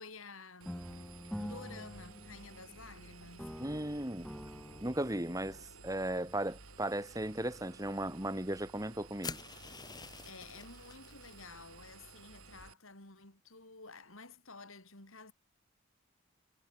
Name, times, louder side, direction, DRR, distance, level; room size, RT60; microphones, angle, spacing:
voice 1, 0.0-3.5 10.2-15.3, left 3 dB, 75° left, 5.4 m, -52 dB
Engine, 0.6-12.7, right 3 dB, 80° right, 5.7 m, -55 dB
sound 1, 0.7-3.0 3.4-5.6, equal, ahead, 6.6 m, -46 dB
voice 2, 3.6-4.3 4.8-5.6 5.8-9.4, right 1 dB, 15° right, 2.5 m, -36 dB
sound 2, 9.2-11.4, left 5 dB, 20° left, 3.0 m, -46 dB
head